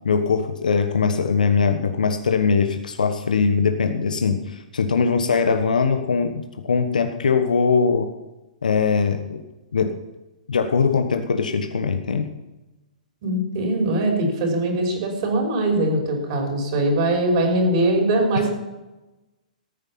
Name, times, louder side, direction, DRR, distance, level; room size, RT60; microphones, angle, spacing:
voice 1, 0.0-8.1 8.6-9.4 9.7-10.0 10.5-12.3 18.4-18.5, left 5 dB, 80° left, 7 dB, 1.2 m, -21 dB
voice 2, 13.2-18.5, right 1 dB, 50° right, 2 dB, 5.2 m, -21 dB
14.5 x 9.2 x 5.9 m, 1.0 s
hypercardioid pair, 125°, 4 cm